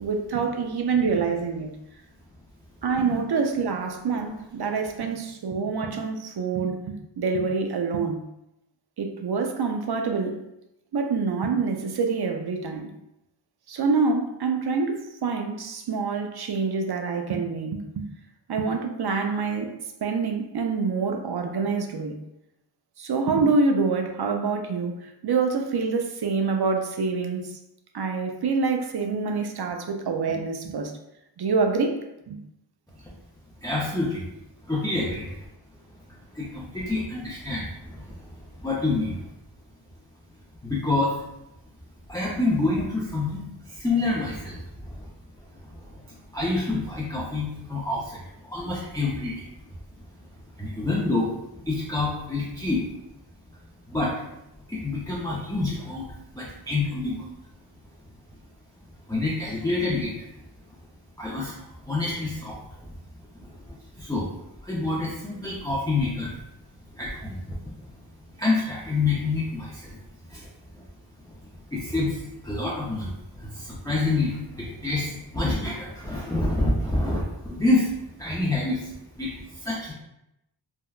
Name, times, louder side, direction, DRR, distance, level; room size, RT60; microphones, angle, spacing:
voice 1, 0.0-1.7 2.8-8.2 9.0-10.4 10.9-12.9 13.7-18.1 18.5-19.7 20.0-22.2 23.0-27.5 27.9-30.9 31.4-32.0 32.3-32.4 35.0-35.2, right 4 dB, 60° right, 5 dB, 0.5 m, -26 dB
voice 2, 33.6-34.3 34.7-35.3 36.3-38.1 38.6-39.2 40.6-41.1 42.1-43.5 43.7-45.0 46.3-48.2 48.5-49.5 50.6-51.3 51.7-52.8 53.9-54.1 54.7-56.1 56.3-57.2 59.1-60.1 61.2-61.6 61.9-62.6 63.7-64.3 64.6-66.3 67.0-67.6 68.4-70.0 70.3-70.4 71.7-73.1 73.4-77.9 78.2-78.9 79.2-79.3 79.6-79.9, left 2 dB, 10° left, -6 dB, 0.5 m, -27 dB
3.4 x 2.1 x 2.3 m, 0.86 s
wide cardioid pair, 40°, 45 cm